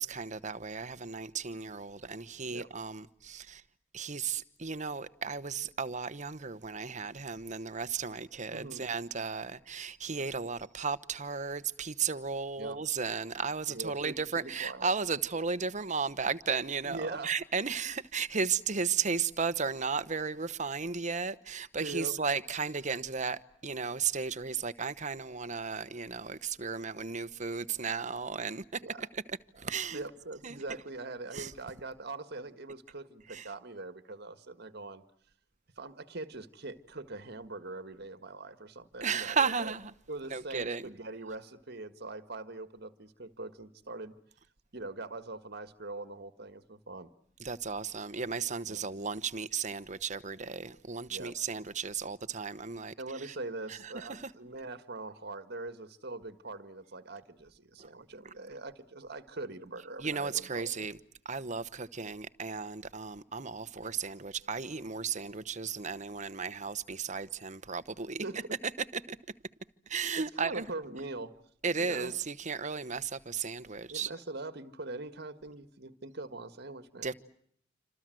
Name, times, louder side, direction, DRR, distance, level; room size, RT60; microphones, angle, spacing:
voice 1, 0.0-3.6 3.9-30.0 30.4-30.6 31.3-31.5 33.3-33.5 39.0-39.9 40.3-40.9 47.4-53.4 53.7-54.3 57.8-57.9 60.0-61.0 61.2-68.4 68.9-69.2 69.9-70.7 71.6-74.1 77.0-77.1, right 5 dB, 40° right, 1.1 m, -35 dB
voice 2, 8.5-8.8 12.6-12.8 13.7-14.9 16.9-17.3 21.8-22.2 28.8-29.1 29.9-35.0 35.8-39.7 40.1-44.2 44.7-47.1 48.7-48.8 51.1-51.3 53.0-60.9 68.2-68.6 70.4-71.3 71.8-72.1 73.9-77.1, right 2 dB, 60° right, 1.7 m, -42 dB
28.0 x 26.5 x 7.8 m
head